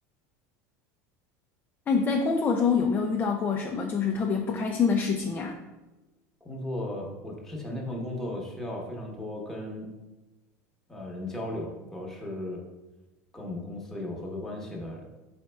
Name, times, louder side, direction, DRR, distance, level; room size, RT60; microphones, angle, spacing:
voice 1, 1.9-5.6, left 5 dB, 25° left, 1 dB, 0.4 m, -26 dB
voice 2, 6.4-9.9 10.9-12.6 13.3-15.0, left 1 dB, 5° left, -2 dB, 1.0 m, -36 dB
4.6 x 4.2 x 2.2 m, 1.1 s
supercardioid pair, 115°, 8 cm